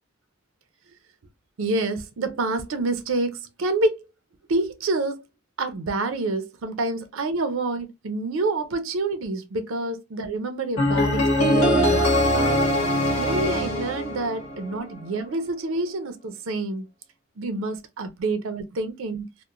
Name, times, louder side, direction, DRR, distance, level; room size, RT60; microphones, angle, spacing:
voice 1, 1.6-4.0 4.5-5.2 5.6-12.6 13.2-16.8 17.4-19.3, right 2 dB, 75° right, 0.5 m, -27 dB
sound 1, 10.8-14.8, left 1 dB, 85° left, 1.0 m, -22 dB
2.8 x 2.0 x 2.4 m
head